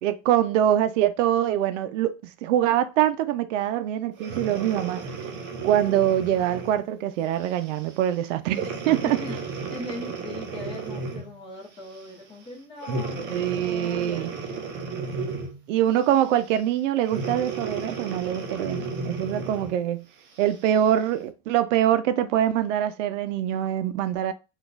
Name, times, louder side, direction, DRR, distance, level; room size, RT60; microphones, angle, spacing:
voice 1, 0.0-2.1 2.4-5.0 5.6-9.2 13.3-14.3 15.7-20.0 20.4-24.3, right 11 dB, 80° right, 0.5 m, -24 dB
Breathing, 4.2-6.8 7.4-7.7 8.5-11.4 12.8-15.7 17.0-19.8 20.4-20.5, right 4 dB, 30° right, 0.6 m, -33 dB
voice 2, 9.0-13.3 13.6-14.5, left 1 dB, 15° left, 0.9 m, -39 dB
3.7 x 2.5 x 2.4 m
supercardioid pair, 155°, 36 cm